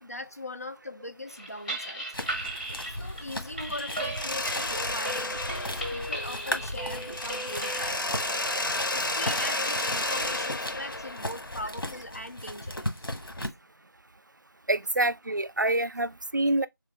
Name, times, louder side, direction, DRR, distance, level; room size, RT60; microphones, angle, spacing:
voice 1, 0.0-2.0 2.7-8.1 8.9-12.9 13.4-13.5, left 1 dB, 45° left, 0.4 m, -40 dB
sound 1, 1.3-7.9, right 1 dB, 25° right, 0.7 m, -37 dB
sound 2, 2.1-13.5, left 1 dB, 90° left, 1.4 m, -37 dB
Mechanisms, 4.1-6.7 7.1-12.0, left 2 dB, 70° left, 0.8 m, -32 dB
voice 2, 14.7-16.7, right 2 dB, 55° right, 0.4 m, -26 dB
3.8 x 3.7 x 3.2 m
figure-of-eight pair, 180°, 12 cm